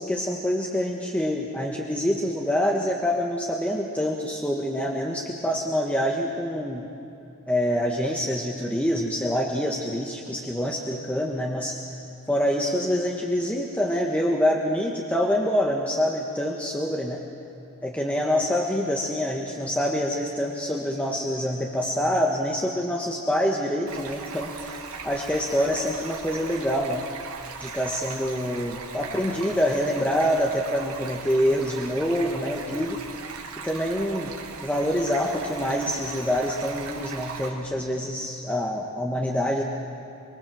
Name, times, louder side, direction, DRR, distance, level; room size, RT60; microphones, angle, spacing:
voice 1, 0.0-6.8 7.5-11.8 12.3-17.2 17.8-27.0 27.6-33.0 33.6-34.3 34.6-39.6, equal, 5° left, -1 dB, 1.6 m, -26 dB
Stream, 23.9-37.5, right 5 dB, 80° right, 3.0 m, -39 dB
24.5 x 24.0 x 7.8 m, 2.7 s
head